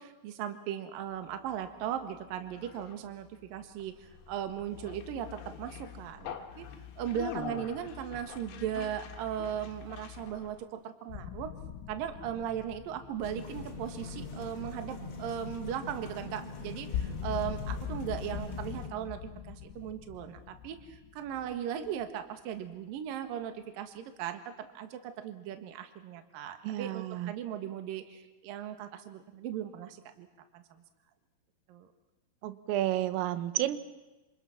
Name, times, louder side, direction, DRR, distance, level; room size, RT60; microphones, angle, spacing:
voice 1, 0.0-6.7 7.0-11.5 11.9-30.3 30.5-30.8 31.7-31.9, right 10 dB, 60° right, 8 dB, 2.7 m, -38 dB
Conversation, 1.2-10.6, left 8 dB, 60° left, 3.0 m, -45 dB
sound 1, 11.1-16.0 16.3-16.4 16.7-22.2, left 9 dB, 90° left, 3.6 m, -42 dB
sound 2, 13.2-18.9, left 3 dB, 40° left, 3.2 m, -42 dB
voice 2, 26.6-27.3 32.4-33.8, right 14 dB, 90° right, 12 dB, 3.7 m, -31 dB
28.0 x 26.5 x 5.9 m, 1.1 s
omnidirectional pair, 5.7 m